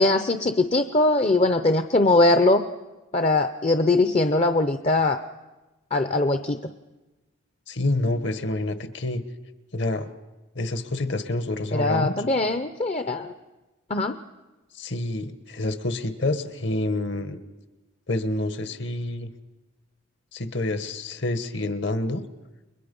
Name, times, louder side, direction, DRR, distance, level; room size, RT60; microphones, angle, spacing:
voice 1, 0.0-2.7 3.1-5.2 5.9-6.7 11.7-13.3 13.9-14.2, left 2 dB, 30° left, 9 dB, 0.7 m, -21 dB
voice 2, 7.7-9.2 9.7-10.1 10.5-12.2 14.7-17.4 18.1-19.3 20.3-22.2, left 2 dB, 60° left, 10 dB, 1.4 m, -27 dB
30.0 x 22.0 x 5.4 m, 1.1 s
head